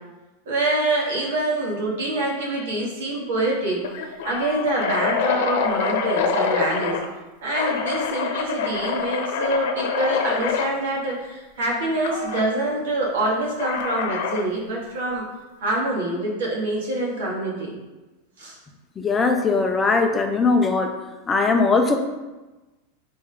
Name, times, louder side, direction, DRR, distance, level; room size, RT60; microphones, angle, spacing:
voice 1, 0.5-7.0 7.4-15.2 15.6-17.7 18.4-18.6, right 2 dB, 80° right, -3 dB, 2.3 m, -25 dB
sound 1, 2.6-2.9 3.2-3.3 3.8-7.1 7.5-10.7 12.0-12.5 13.6-14.5, left 6 dB, 60° left, 0.8 m, -26 dB
voice 2, 19.0-20.9 21.3-22.0, left 4 dB, 10° left, 4 dB, 0.4 m, -20 dB
5.7 x 4.2 x 4.9 m, 1.1 s
supercardioid pair, 175°, 0 cm